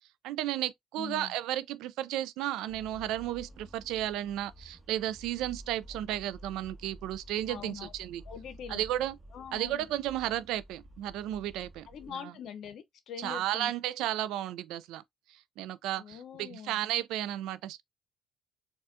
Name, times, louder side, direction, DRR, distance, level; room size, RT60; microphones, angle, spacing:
voice 1, 0.2-8.2 8.7-9.2 9.5-12.3 13.2-15.0 15.6-17.8, right 13 dB, 75° right, 0.3 m, -33 dB
voice 2, 1.0-1.3 7.5-7.9 8.3-8.9 9.3-9.9 11.9-13.7 16.0-16.8, left 8 dB, 65° left, 0.7 m, -43 dB
sound 1, 2.7-12.1, equal, 30° right, 1.1 m, -51 dB
4.1 x 2.3 x 2.5 m
hypercardioid pair, 55°, 0 cm